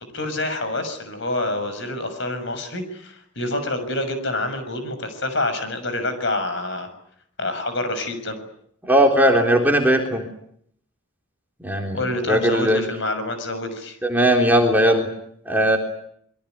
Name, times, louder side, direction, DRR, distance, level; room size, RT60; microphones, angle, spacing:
voice 1, 0.1-6.9 7.4-8.4 11.9-14.0, left 2 dB, 55° left, 9 dB, 6.8 m, -27 dB
voice 2, 8.9-10.2 11.6-12.0 12.3-12.8 14.0-15.1 15.5-15.8, right 1 dB, 10° right, 2 dB, 3.7 m, -18 dB
25.5 x 23.5 x 9.5 m, 0.69 s
head